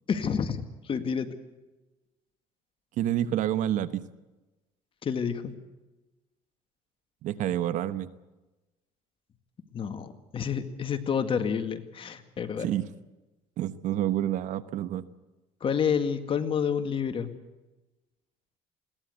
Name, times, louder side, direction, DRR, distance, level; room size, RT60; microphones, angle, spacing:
voice 1, 0.1-1.3 5.0-5.5 9.7-12.7 15.6-17.3, left 7 dB, 40° left, 9 dB, 2.0 m, -29 dB
voice 2, 3.0-4.0 7.2-8.1 12.6-12.9 13.6-15.0, right 12 dB, 70° right, 14 dB, 1.1 m, -28 dB
21.0 x 17.5 x 8.1 m, 1.1 s
cardioid pair, 105°, 14 cm